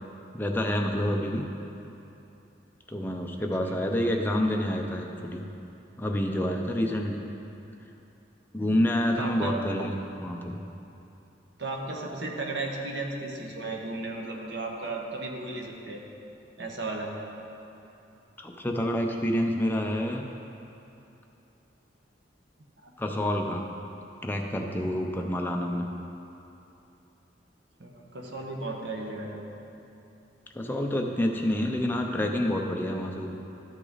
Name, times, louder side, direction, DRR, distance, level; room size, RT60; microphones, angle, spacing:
voice 1, 0.3-1.4 2.9-5.4 6.0-7.2 8.5-9.9 10.2-10.6 18.4-20.2 23.0-23.7 24.2-25.9 30.5-33.3, left 1 dB, 10° left, 1 dB, 0.5 m, -28 dB
voice 2, 3.4-3.8 9.1-9.6 11.6-16.0 16.6-17.1 22.8-22.9 27.8-29.4, right 2 dB, 65° right, 0 dB, 1.0 m, -35 dB
12.5 x 6.1 x 4.0 m, 2.9 s
head